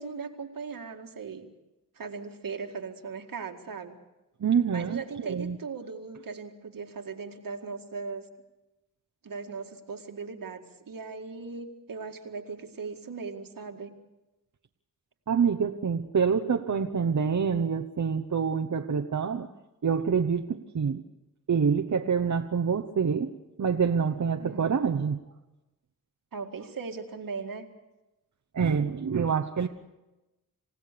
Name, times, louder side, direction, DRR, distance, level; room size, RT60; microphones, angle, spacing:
voice 1, 0.0-1.5 2.0-4.0 4.7-8.3 9.2-13.9 24.4-24.9 26.3-27.7, right 5 dB, 85° right, 4 dB, 2.1 m, -38 dB
voice 2, 4.4-5.6 15.3-19.5 19.8-21.0 21.5-23.3 23.6-25.2 28.5-29.7, right 6 dB, 60° right, 5 dB, 1.1 m, -26 dB
28.5 x 16.5 x 6.9 m, 1.0 s
wide cardioid pair, 70°, 33 cm